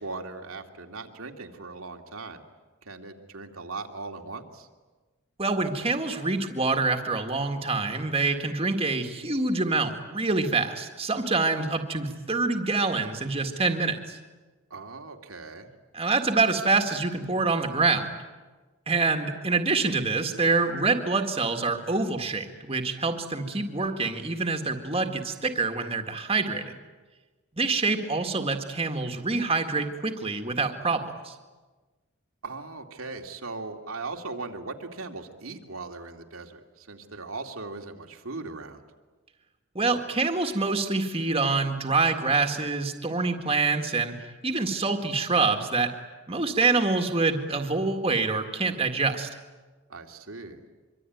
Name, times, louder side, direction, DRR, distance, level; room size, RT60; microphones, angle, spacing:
voice 1, 0.0-2.4 2.8-4.7 14.7-15.7 32.4-38.8 49.9-50.7, right 3 dB, 85° right, 3 dB, 2.6 m, -39 dB
voice 2, 5.4-14.2 15.9-18.2 18.9-26.7 27.5-31.3 39.8-44.2 44.4-45.9 46.3-49.3, right 3 dB, 25° right, 5 dB, 1.9 m, -26 dB
25.0 x 24.5 x 9.4 m, 1.3 s
head